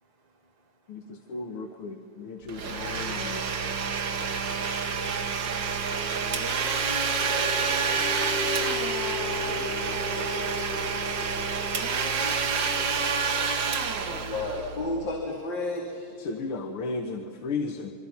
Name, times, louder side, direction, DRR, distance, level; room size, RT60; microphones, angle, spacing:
voice 1, 0.2-0.5 1.1-1.3 2.2-2.5, right 4 dB, 85° right, 5 dB, 3.5 m, -50 dB
voice 2, 0.9-3.5 16.1-17.9, left 4 dB, 80° left, 5 dB, 2.2 m, -35 dB
Domestic sounds home sounds, 2.5-15.1, right 5 dB, 60° right, 2.1 m, -28 dB
sound 1, 6.2-13.3, left 7 dB, 30° left, 2.2 m, -38 dB
voice 3, 14.1-16.1, left 2 dB, 60° left, -2 dB, 3.4 m, -32 dB
27.0 x 23.5 x 5.8 m, 2.6 s
omnidirectional pair, 2.4 m